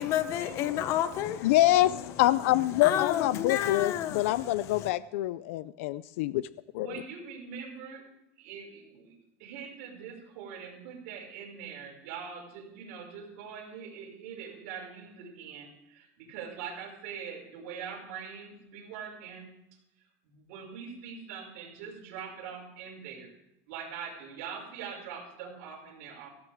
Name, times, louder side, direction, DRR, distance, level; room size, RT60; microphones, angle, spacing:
voice 1, 0.0-4.9, left 11 dB, 40° left, 13 dB, 0.8 m, -32 dB
voice 2, 1.4-6.5 6.7-7.0, left 15 dB, 75° left, 16 dB, 0.4 m, -26 dB
voice 3, 6.7-8.1 8.4-9.1 9.4-19.5 20.2-23.4 23.7-26.3, right 6 dB, 65° right, -2 dB, 5.9 m, -43 dB
17.0 x 15.5 x 3.6 m, 0.86 s
supercardioid pair, 160°, 7 cm